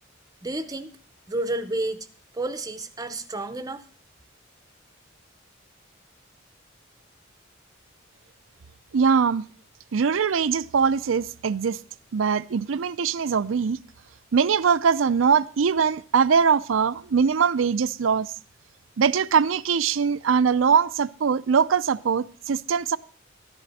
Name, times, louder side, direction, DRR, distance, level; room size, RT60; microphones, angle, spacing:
voice 1, 0.4-1.0 1.3-2.1 2.3-3.9, right 2 dB, 20° right, 0.7 m, -30 dB
voice 2, 8.9-9.5 9.9-11.8 12.1-13.8 14.3-18.3 19.0-23.0, right 6 dB, 80° right, 0.5 m, -22 dB
13.0 x 10.5 x 4.2 m
head